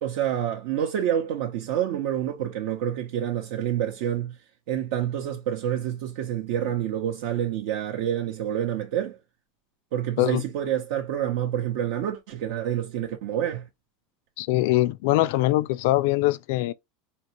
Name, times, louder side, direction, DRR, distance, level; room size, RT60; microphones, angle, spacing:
voice 1, 0.0-4.4 4.7-9.2 9.9-13.7, right 10 dB, 65° right, 0.7 m, -28 dB
voice 2, 14.4-16.7, left 17 dB, 65° left, 0.4 m, -22 dB
4.5 x 2.8 x 2.9 m
supercardioid pair, 150°, 0 cm